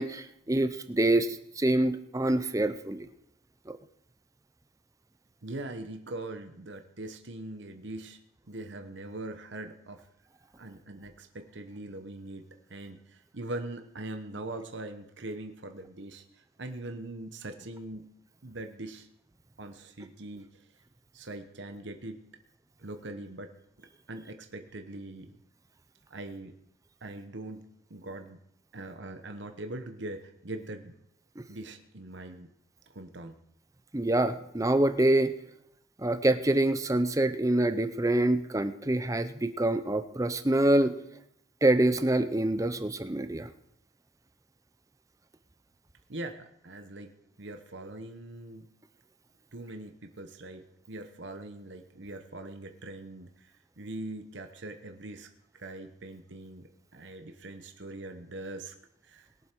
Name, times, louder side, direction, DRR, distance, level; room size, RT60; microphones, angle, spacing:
voice 1, 0.0-3.1 31.4-31.5 33.9-35.3 36.0-40.9 41.6-43.5, right 1 dB, 15° right, 10 dB, 0.6 m, -26 dB
voice 2, 5.4-8.2 8.5-10.0 10.6-12.4 12.7-18.1 18.4-19.1 19.6-20.5 21.1-22.2 22.8-23.5 23.8-25.4 26.1-26.5 27.0-27.6 27.9-28.4 28.7-31.0 31.5-32.5 32.9-33.4 46.1-47.1 47.4-48.7 49.5-55.3 55.5-58.8 59.0-59.3, right 2 dB, 60° right, 6 dB, 1.1 m, -42 dB
21.0 x 7.5 x 4.6 m, 0.74 s
head